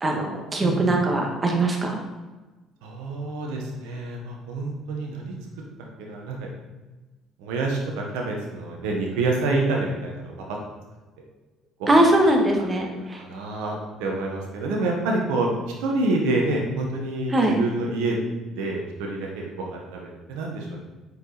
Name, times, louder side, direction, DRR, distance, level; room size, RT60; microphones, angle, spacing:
voice 1, 0.0-2.0 11.9-13.2 17.3-17.6, right 1 dB, 30° right, 1 dB, 1.7 m, -21 dB
voice 2, 0.6-0.9 2.8-5.3 6.0-6.5 7.4-10.3 11.8-12.0 13.2-15.5 15.8-18.2 18.6-20.8, right 2 dB, 80° right, 0 dB, 1.3 m, -27 dB
7.7 x 5.1 x 4.1 m, 1.2 s
hypercardioid pair, 65°, 0 cm